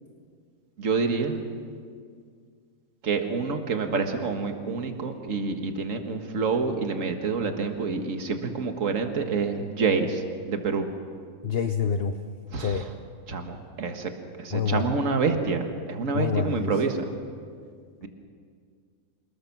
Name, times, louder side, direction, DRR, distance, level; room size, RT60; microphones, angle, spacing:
voice 1, 0.8-1.4 3.0-10.2 10.5-10.9 12.5-12.8 13.3-14.1 14.4-17.0, right 4 dB, 50° right, 5 dB, 1.9 m, -27 dB
voice 2, 11.4-12.1 12.6-12.8 14.5-14.9 16.1-16.7, left 6 dB, 45° left, 7 dB, 0.8 m, -26 dB
27.0 x 20.0 x 6.1 m, 2.1 s
omnidirectional pair, 1.8 m